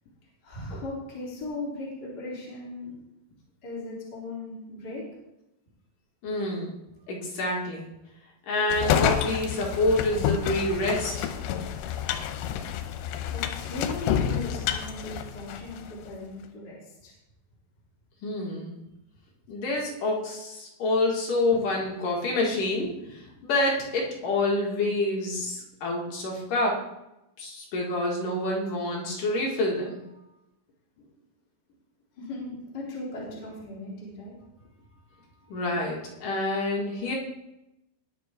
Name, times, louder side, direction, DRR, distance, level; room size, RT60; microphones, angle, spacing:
voice 1, 0.4-2.9 3.6-5.0 13.3-17.1 32.2-34.4, left 2 dB, 25° left, -6 dB, 3.8 m, -38 dB
voice 2, 6.2-6.7 7.1-7.9 8.5-11.3 18.2-18.7 19.5-26.8 27.4-30.0 35.5-37.1, left 2 dB, 55° left, -2 dB, 3.3 m, -27 dB
sound 1, 8.7-15.9, left 9 dB, 90° left, 3.0 m, -29 dB
20.5 x 7.1 x 3.8 m, 0.90 s
omnidirectional pair, 5.0 m